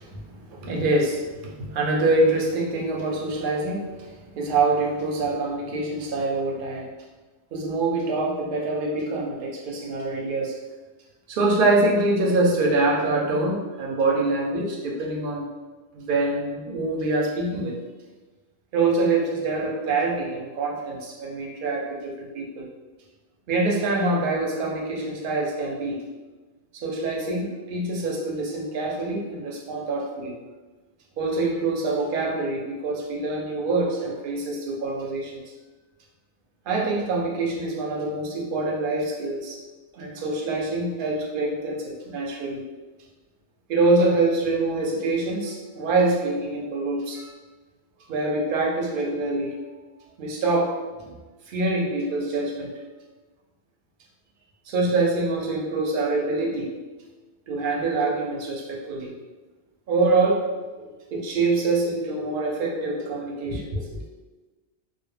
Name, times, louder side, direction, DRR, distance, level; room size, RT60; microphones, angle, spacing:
voice 1, 0.0-4.1 4.3-6.9 7.5-10.5 11.3-15.5 15.9-17.7 18.7-22.7 23.5-26.0 26.7-30.3 31.2-35.3 36.7-39.6 39.9-42.6 43.7-47.3 48.1-49.5 50.2-50.7 51.0-51.1 51.5-52.7 54.7-56.7 57.5-59.1 59.9-64.0, right 2 dB, 60° right, -1 dB, 0.6 m, -25 dB
2.1 x 2.0 x 3.1 m, 1.3 s
omnidirectional pair, 1.2 m